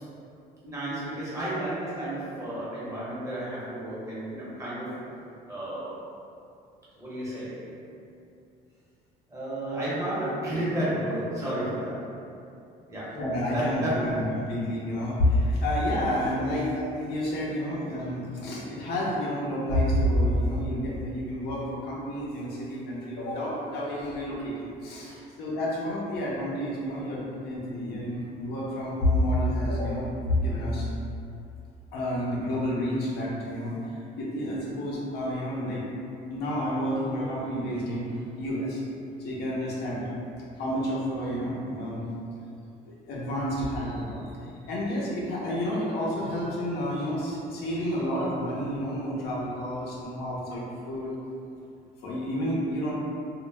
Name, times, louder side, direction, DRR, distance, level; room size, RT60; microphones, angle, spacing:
voice 1, 0.6-5.1 5.5-6.0 7.0-7.7 9.3-12.1 12.9-13.2 13.5-14.3 25.0-25.2, right 1 dB, 20° right, -10 dB, 1.0 m, -32 dB
voice 2, 13.1-30.9 31.9-35.8 36.3-38.1 38.4-38.8 39.2-40.1 40.6-42.1 42.8-51.1 52.0-52.9, equal, 75° left, -6 dB, 0.7 m, -29 dB
2.2 x 2.0 x 3.3 m, 2.6 s
cardioid pair, 110°, 17 cm